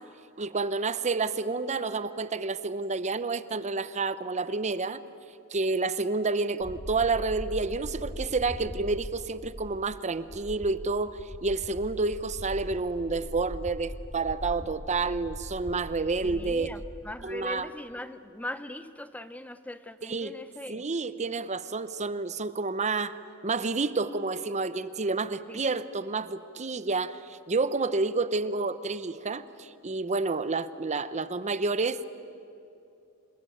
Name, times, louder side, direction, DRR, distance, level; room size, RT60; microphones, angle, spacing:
voice 1, 0.4-5.0 5.5-16.7 17.2-17.7 20.0-20.3 20.7-23.2 23.4-32.0, right 3 dB, 30° right, 14 dB, 0.8 m, -29 dB
sound 1, 6.6-17.0, equal, 15° right, 4.8 m, -40 dB
voice 2, 16.2-20.8 25.5-25.6, left 1 dB, 5° left, 12 dB, 0.6 m, -40 dB
27.0 x 20.5 x 9.2 m, 2.7 s
head